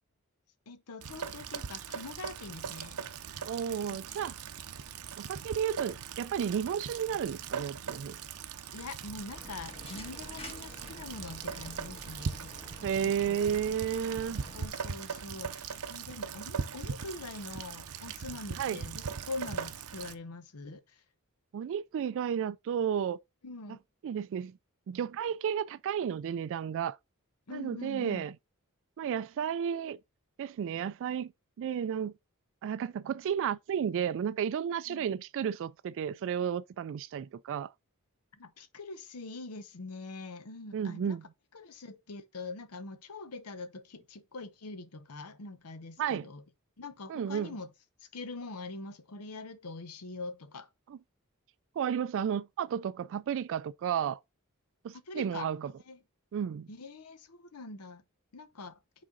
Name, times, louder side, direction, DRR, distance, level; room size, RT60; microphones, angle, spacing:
voice 1, 0.7-3.0 3.6-3.8 4.1-4.3 8.7-12.5 13.0-13.4 14.5-21.0 23.4-23.8 27.5-28.3 34.9-35.0 38.4-41.2 41.5-46.4 46.8-47.7 48.0-50.7 54.9-55.5 55.8-56.0 56.7-58.0 58.3-58.7, left 3 dB, 85° left, 0.8 m, -44 dB
Rain, 1.0-20.2, right 6 dB, 85° right, 0.7 m, -40 dB
voice 2, 3.5-4.3 5.2-8.2 12.8-14.4 18.6-18.8 21.5-23.2 24.0-24.5 24.9-27.0 27.5-28.3 29.0-30.0 30.4-31.3 31.6-32.1 32.6-37.7 40.7-41.2 46.0-46.3 47.1-47.5 51.8-54.2 54.8-55.7 56.3-56.7, right 8 dB, 60° right, 0.3 m, -32 dB
sound 1, 9.3-14.7, left 1 dB, 25° left, 1.5 m, -48 dB
6.2 x 4.2 x 3.8 m
head